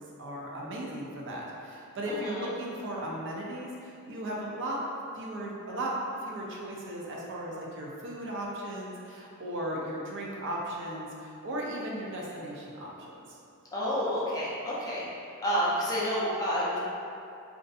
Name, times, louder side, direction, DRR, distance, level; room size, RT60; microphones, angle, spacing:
voice 1, 0.0-4.8 5.1-5.9 6.2-13.4, right 1 dB, 55° right, -3 dB, 0.4 m, -36 dB
voice 2, 2.1-2.5 13.7-15.0 15.4-16.8, equal, 15° left, -8 dB, 0.4 m, -29 dB
2.5 x 2.4 x 2.3 m, 2.5 s
head